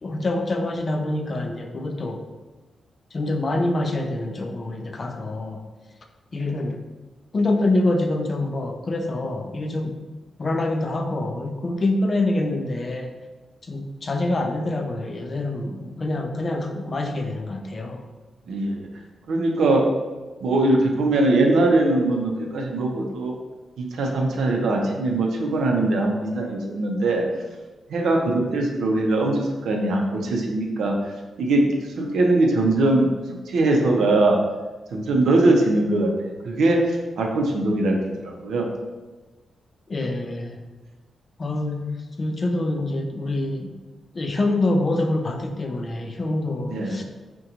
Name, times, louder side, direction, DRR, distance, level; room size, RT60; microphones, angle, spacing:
voice 1, 0.0-2.2 3.1-5.6 6.3-6.8 7.3-10.0 10.4-13.1 13.6-18.0 39.9-40.6 41.4-43.7 44.1-47.0, left 2 dB, 35° left, 4 dB, 0.3 m, -25 dB
voice 2, 18.5-18.9 19.3-19.8 20.4-23.3 23.8-27.2 27.9-30.9 31.4-31.6 32.0-33.1 33.5-34.4 34.9-36.8 37.2-38.0 38.2-38.7 46.7-47.0, right 2 dB, 90° right, 0 dB, 0.5 m, -21 dB
3.7 x 2.2 x 2.8 m, 1.2 s
cardioid pair, 115°, 0 cm